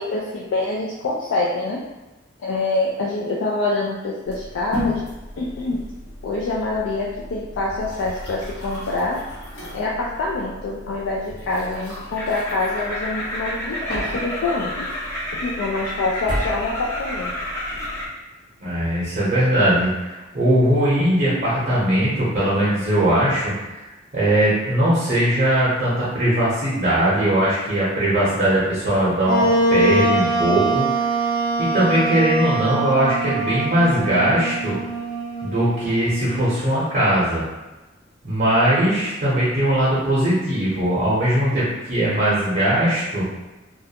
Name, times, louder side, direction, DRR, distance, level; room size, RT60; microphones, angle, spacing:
voice 1, 0.0-1.8 2.4-5.0 5.4-5.8 6.2-9.2 9.7-14.9 15.4-17.3, left 2 dB, 65° left, -4 dB, 0.3 m, -25 dB
sound 1, 4.2-18.1, left 1 dB, 85° left, 1.0 m, -35 dB
sound 2, 12.1-18.0, left 1 dB, 15° left, 0.5 m, -30 dB
voice 2, 18.6-23.8 24.1-31.1 31.6-34.8 35.4-37.4 38.2-43.3, right 1 dB, 40° right, -9 dB, 0.6 m, -20 dB
Wind instrument woodwind instrument, 29.2-36.7, right 2 dB, 50° left, 1.0 m, -23 dB
2.3 x 2.1 x 2.7 m, 1.1 s
head